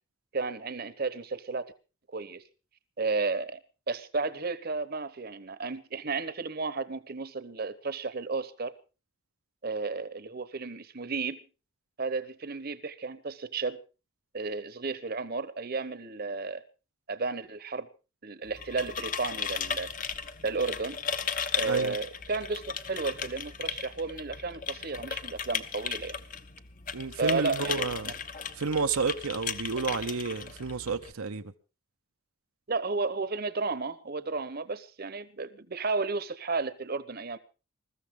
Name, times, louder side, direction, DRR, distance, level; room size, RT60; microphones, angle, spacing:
voice 1, 0.3-1.7 2.1-2.4 3.0-3.6 3.9-8.7 9.6-11.4 12.0-13.8 14.3-16.6 17.1-17.9 18.2-19.9 20.4-21.0 21.6-26.2 27.2-28.1 32.7-37.4, right 4 dB, 45° right, 0.9 m, -33 dB
sound 1, 18.4-31.1, left 7 dB, 40° left, 0.8 m, -36 dB
voice 2, 21.6-22.0 26.9-28.1 28.5-31.5, right 4 dB, 80° right, 0.8 m, -31 dB
21.0 x 14.0 x 3.7 m
head